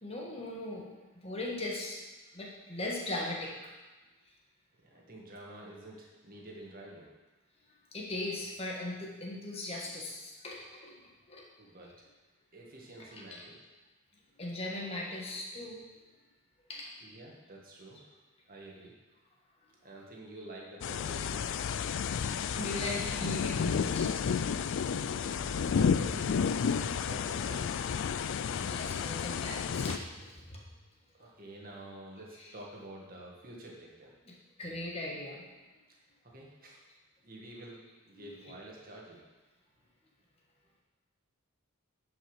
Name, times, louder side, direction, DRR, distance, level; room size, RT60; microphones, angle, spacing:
voice 1, 0.0-0.8 1.2-2.0 2.3-3.5 7.9-10.9 11.3-11.4 13.3-13.4 14.4-15.8 16.7-16.9 22.1-24.1 28.6-30.6 34.2-34.3 34.6-35.4 38.2-38.3, left 1 dB, 25° left, -2 dB, 1.6 m, -38 dB
voice 2, 4.8-7.1 11.6-11.9 12.5-13.6 17.0-18.0 18.5-18.9 19.8-21.7 25.1-27.7 31.1-34.1 36.0-36.8 37.2-39.2, right 1 dB, 40° right, -2 dB, 1.8 m, -49 dB
sound 1, 20.8-30.0, left 6 dB, 55° left, 0.3 m, -31 dB
10.0 x 5.4 x 5.1 m, 1.2 s
head